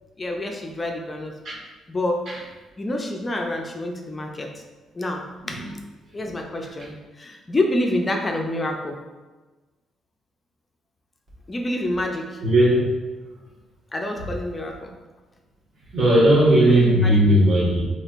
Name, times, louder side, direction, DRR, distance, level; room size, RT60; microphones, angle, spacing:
voice 1, 0.2-1.3 1.9-2.3 2.8-4.6 4.9-5.7 6.1-9.0 11.5-12.4 13.9-14.9 16.6-17.2, left 1 dB, 25° left, 2 dB, 0.5 m, -27 dB
voice 2, 12.4-12.9 15.9-17.8, right 1 dB, 60° right, -5 dB, 1.4 m, -17 dB
4.2 x 3.3 x 2.5 m, 1.2 s
cardioid pair, 90°, 0 cm